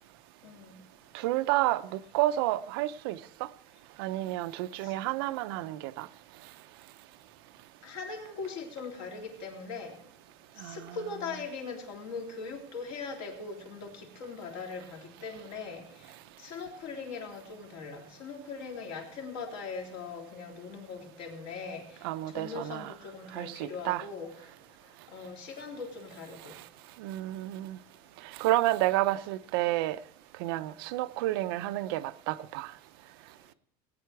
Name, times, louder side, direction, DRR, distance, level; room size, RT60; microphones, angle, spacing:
voice 1, 0.4-0.8 4.8-4.9 7.8-9.9 10.6-15.8 16.4-21.8 22.3-24.3 25.1-26.5, left 4 dB, 60° left, 3.2 m, -40 dB
voice 2, 1.1-3.5 4.0-6.1 10.6-11.3 22.0-22.9 23.3-24.0 27.0-27.8 28.4-30.0 30.4-32.7, right 16 dB, 85° right, 0.6 m, -30 dB
19.0 x 9.2 x 4.6 m
cardioid pair, 180°, 12 cm